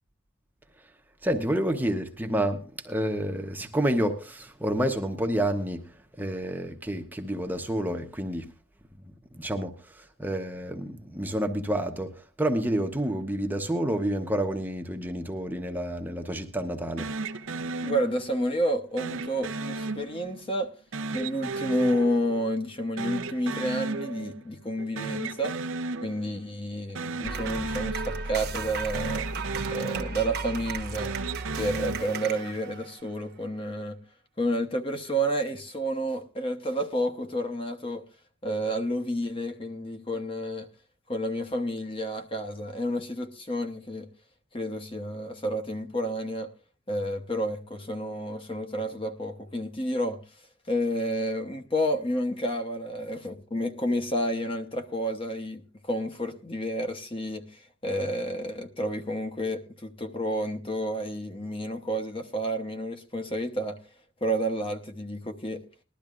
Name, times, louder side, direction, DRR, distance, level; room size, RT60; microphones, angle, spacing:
voice 1, 1.2-8.5 9.3-17.1, right 1 dB, 10° right, 0.9 m, -29 dB
sound 1, 17.0-18.5 19.0-20.5 20.9-22.7 23.0-24.5 24.8-26.5 26.9-28.7 28.9-30.5 30.9-32.7, right 3 dB, 70° right, 0.7 m, -35 dB
voice 2, 17.8-20.7 21.1-25.6 26.0-29.3 29.7-31.2 31.6-34.0 34.4-38.1 38.4-40.7 41.1-44.1 44.5-46.5 46.9-63.8 64.2-65.6, equal, 25° left, 1.0 m, -30 dB
sound 2, 27.2-33.2, right 4 dB, 50° right, 1.1 m, -35 dB
20.0 x 12.5 x 2.4 m
head